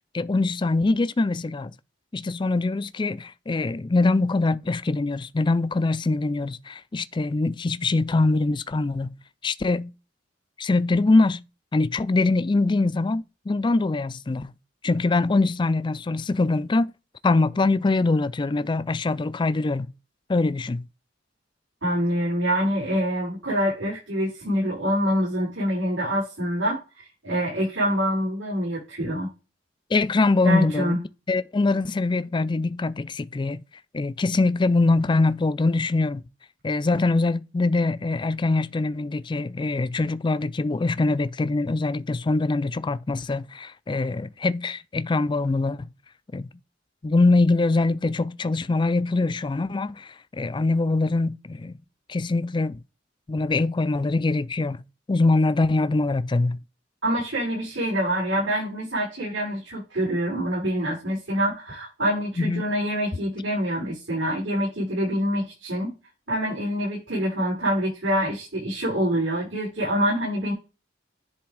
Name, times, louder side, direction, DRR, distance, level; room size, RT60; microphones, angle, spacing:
voice 1, 0.1-1.7 2.1-9.2 9.4-9.9 10.6-11.4 11.7-14.5 14.8-16.9 17.2-19.9 20.3-20.9 29.9-31.0 31.3-33.6 33.9-36.2 36.6-45.9 46.3-46.5 47.0-51.7 52.1-52.8 53.3-54.8 55.1-56.6 62.4-62.6, left 3 dB, 25° left, 0.4 m, -23 dB
voice 2, 21.8-29.3 30.4-31.0 57.0-65.9 66.3-70.5, equal, 80° right, 5.3 m, -26 dB
10.5 x 3.4 x 4.8 m
head